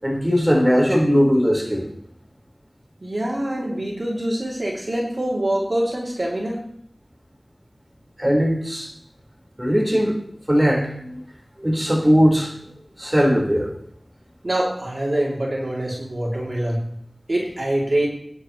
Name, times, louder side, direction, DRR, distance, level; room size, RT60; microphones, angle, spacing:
voice 1, 0.0-1.9 8.2-8.9 9.6-10.2 10.5-11.2 11.6-12.5 13.0-13.7, equal, 15° right, -2 dB, 4.4 m, -19 dB
voice 2, 3.0-6.6 14.4-16.9 17.3-18.1, right 1 dB, 55° right, -4 dB, 2.9 m, -24 dB
21.0 x 9.9 x 3.1 m, 0.70 s
wide cardioid pair, 45°, 0 cm